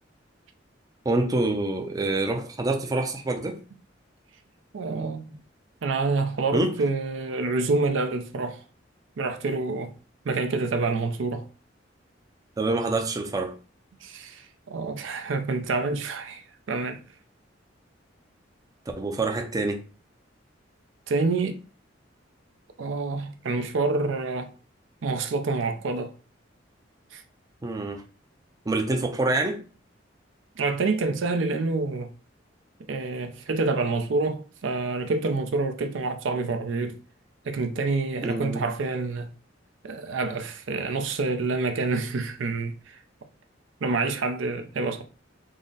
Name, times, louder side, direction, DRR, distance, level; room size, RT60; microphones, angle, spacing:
voice 1, 1.1-3.6 6.5-6.7 12.6-13.5 19.0-19.8 27.6-28.0 28.7-29.6 38.2-38.6, right 2 dB, 20° right, 0.4 m, -26 dB
voice 2, 4.7-5.3 5.8-8.6 9.2-9.9 10.2-11.5 14.0-17.0 21.1-21.6 22.8-24.5 25.0-26.1 27.1-27.2 30.6-32.1 32.9-37.0 37.5-39.3 39.8-43.0 43.8-45.0, right 3 dB, 80° right, 0.5 m, -27 dB
3.7 x 2.0 x 3.8 m
head